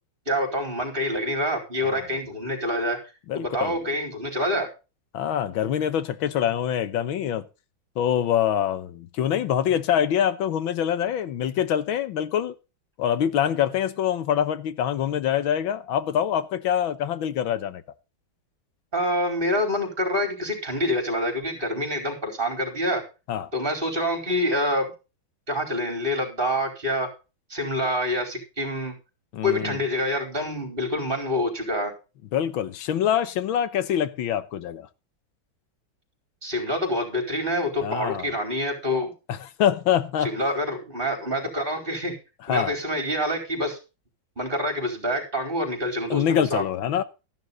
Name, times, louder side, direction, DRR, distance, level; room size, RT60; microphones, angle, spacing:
voice 1, 0.3-3.0 3.3-4.7 18.9-23.0 23.5-24.9 25.5-27.1 27.5-28.9 29.4-31.9 36.4-39.1 40.2-42.2 42.5-43.8 44.4-46.6, left 1 dB, 25° right, 4.6 m, -26 dB
voice 2, 3.3-3.8 5.1-7.5 8.0-12.5 13.0-17.8 23.3-23.5 29.3-29.8 32.3-34.9 37.8-38.3 39.3-40.3 42.5-42.7 46.1-47.0, left 9 dB, 80° left, 1.8 m, -25 dB
13.5 x 11.5 x 3.9 m
omnidirectional pair, 2.2 m